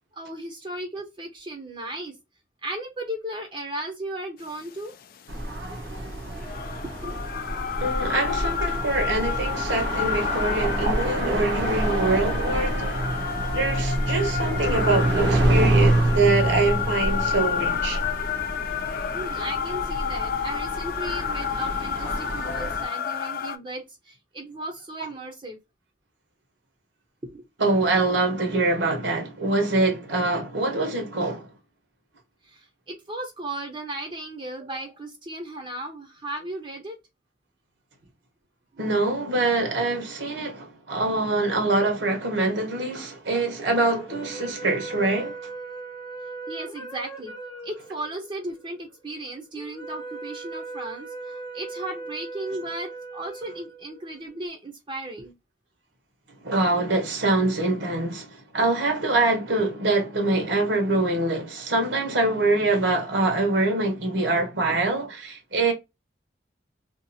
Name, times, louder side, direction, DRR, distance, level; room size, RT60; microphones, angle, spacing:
voice 1, 0.1-2.2 2.6-4.9 6.4-6.5 7.0-7.2 19.1-25.6 27.2-27.4 32.4-37.0 46.5-47.3 47.6-55.3 57.3-57.4, right 1 dB, 30° right, 0.6 m, -36 dB
sound 1, 4.6-23.6, left 8 dB, 50° left, 0.3 m, -30 dB
sound 2, 5.3-22.8, right 1 dB, 70° right, 0.7 m, -27 dB
voice 2, 7.8-13.0 13.5-18.0 25.0-25.1 27.6-31.5 38.8-45.4 56.4-65.7, right 2 dB, 85° right, 1.1 m, -24 dB
sound 3, 43.9-54.3, right 3 dB, 25° left, 0.7 m, -39 dB
2.7 x 2.3 x 2.6 m
head